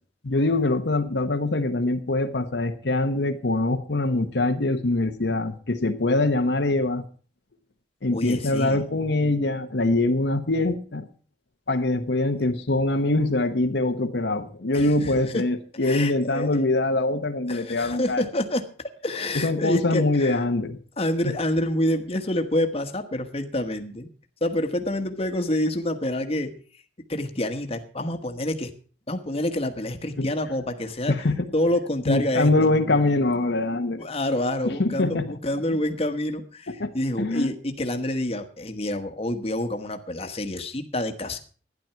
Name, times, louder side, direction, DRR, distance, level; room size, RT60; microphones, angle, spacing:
voice 1, 0.2-7.0 8.0-11.1 11.7-18.3 19.3-20.8 21.2-21.3 30.2-30.3 31.1-31.5 32.1-34.1 34.6-35.3 36.7-36.9 37.2-37.5, left 2 dB, 70° left, 1.0 m, -23 dB
voice 2, 8.1-8.8 14.7-14.9 15.3-15.4 15.8-16.5 17.5-20.4 21.0-24.1 24.4-26.5 27.1-28.7 29.1-31.1 31.5-32.7 34.0-41.4, left 1 dB, 35° left, 1.3 m, -27 dB
12.0 x 10.5 x 5.7 m
head